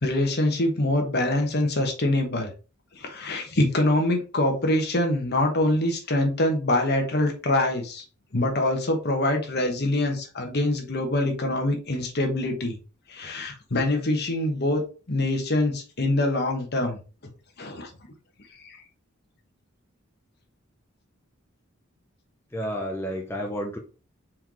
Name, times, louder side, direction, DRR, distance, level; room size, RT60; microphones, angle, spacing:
voice 1, 0.0-2.5 2.9-8.0 8.3-12.8 13.1-17.0 17.6-17.9 18.6-18.8, left 1 dB, 50° left, 3 dB, 1.2 m, -24 dB
voice 2, 22.5-23.8, equal, 10° left, 1 dB, 0.6 m, -30 dB
4.5 x 3.8 x 3.0 m, 0.34 s
head